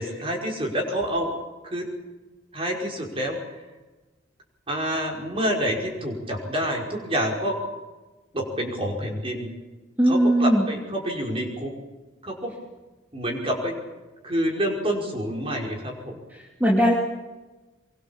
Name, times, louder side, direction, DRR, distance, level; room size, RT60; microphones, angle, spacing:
voice 1, 0.0-1.4 1.6-1.9 2.5-3.4 4.7-7.6 8.3-9.5 10.0-11.7 12.2-12.5 13.1-13.7 14.2-16.2, equal, 25° right, 0 dB, 5.4 m, -27 dB
voice 2, 10.0-10.7 16.3-16.9, equal, 10° right, -3 dB, 2.9 m, -19 dB
25.0 x 23.0 x 7.4 m, 1.2 s
head